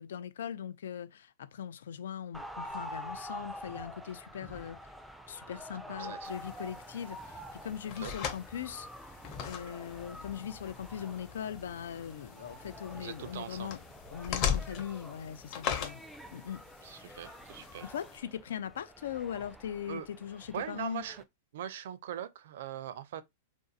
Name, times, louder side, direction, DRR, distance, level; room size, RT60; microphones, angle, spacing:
voice 1, 0.0-4.9 5.3-8.9 9.4-13.8 14.1-16.0 16.3-16.6 16.9-17.3 17.8-21.0, left 9 dB, 85° left, 0.4 m, -40 dB
sound 1, 2.3-21.2, equal, ahead, 0.4 m, -48 dB
voice 2, 6.0-6.3 8.0-8.1 12.9-13.7 16.8-17.8 19.9-20.1 20.5-21.2 21.5-23.2, right 10 dB, 70° right, 0.5 m, -41 dB
sound 2, 6.2-18.2, left 8 dB, 40° left, 0.7 m, -40 dB
2.6 x 2.4 x 3.9 m
supercardioid pair, 145°, 0 cm